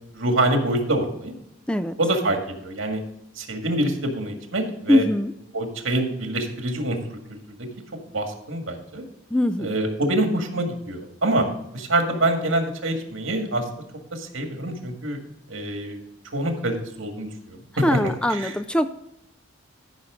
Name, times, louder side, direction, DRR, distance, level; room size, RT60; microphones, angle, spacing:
voice 1, 0.1-1.3 2.0-3.0 3.4-5.0 5.5-7.2 7.5-7.6 8.1-9.0 9.6-11.5 11.7-13.6 14.1-15.2 15.5-16.0 16.3-17.6 18.3-18.5, right 1 dB, 80° right, 4 dB, 1.9 m, -25 dB
voice 2, 4.9-5.3 9.3-9.7 17.8-18.9, left 1 dB, 5° left, 11 dB, 0.3 m, -21 dB
14.5 x 5.9 x 3.8 m, 0.83 s
head